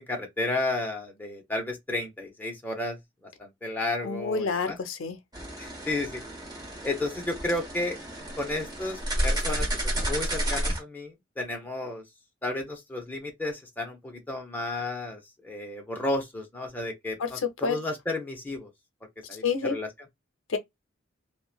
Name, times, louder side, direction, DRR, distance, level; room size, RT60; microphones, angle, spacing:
voice 1, 0.0-3.0 3.4-4.8 5.6-6.2 6.8-8.0 8.4-12.0 12.4-18.7 19.3-19.9, left 2 dB, 10° left, 0.6 m, -32 dB
voice 2, 4.0-5.2 17.2-17.3 17.6-17.8 19.4-19.8 20.5-20.6, left 5 dB, 80° left, 0.5 m, -28 dB
sound 1, 5.3-10.8, right 1 dB, 20° right, 1.1 m, -31 dB
2.9 x 2.1 x 2.3 m
head